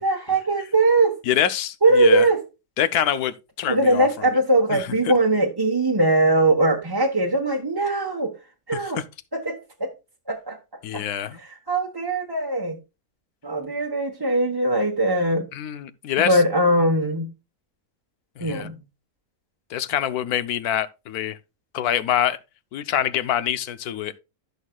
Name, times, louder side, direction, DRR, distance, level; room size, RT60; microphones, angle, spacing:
voice 1, 0.0-1.1 1.8-2.4 3.7-8.3 8.7-9.0 9.3-9.9 10.3-10.6 10.9-11.0 11.4-12.7 13.4-15.5 16.2-17.3 18.4-18.8, right 2 dB, 20° right, 1.0 m, -21 dB
voice 2, 1.3-2.3 2.8-4.1 4.7-4.9 9.0-9.1 10.8-11.4 15.5-16.4 18.4-18.7 19.7-21.4 21.7-22.4 22.7-24.1, left 10 dB, 80° left, 1.2 m, -25 dB
14.5 x 6.4 x 2.3 m
omnidirectional pair, 1.6 m